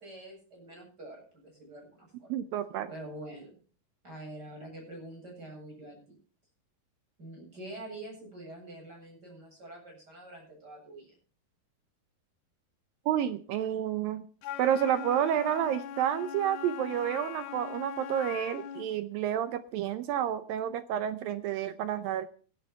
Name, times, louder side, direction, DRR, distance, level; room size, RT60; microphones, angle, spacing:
voice 1, 0.0-2.3 2.9-3.5 4.0-6.2 7.2-11.1, right 1 dB, 25° right, -1 dB, 8.6 m, -46 dB
voice 2, 2.3-2.9 13.1-14.2 14.6-22.3, right 10 dB, 75° right, 12 dB, 2.3 m, -30 dB
Wind instrument woodwind instrument, 14.4-18.9, left 10 dB, 75° left, 3.0 m, -41 dB
17.5 x 11.0 x 4.6 m, 0.41 s
omnidirectional pair, 4.6 m